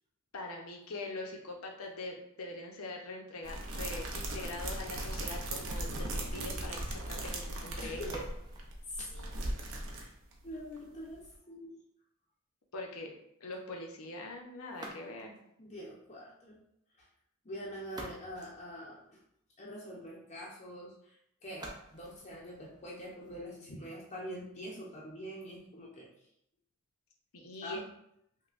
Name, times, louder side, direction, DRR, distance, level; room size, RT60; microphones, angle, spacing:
voice 1, 0.3-8.2 12.7-13.1 13.4-15.4 27.3-27.8, left 2 dB, 80° left, 1 dB, 0.7 m, -43 dB
sound 1, 3.4-10.5 10.8-10.9 11.1-11.3, right 1 dB, 65° right, 0.6 m, -38 dB
voice 2, 7.8-8.3 8.9-9.3 9.6-10.1 10.4-11.7 15.6-16.6 17.0-17.1 17.4-19.2 19.6-21.2 21.4-26.1 27.6-27.8, equal, 30° left, -4 dB, 0.6 m, -45 dB
sound 2, 7.9-10.3 14.7-15.5 17.5-19.5 21.5-23.5, right 1 dB, 20° right, 0.5 m, -52 dB
5.4 x 2.2 x 2.5 m, 0.74 s
head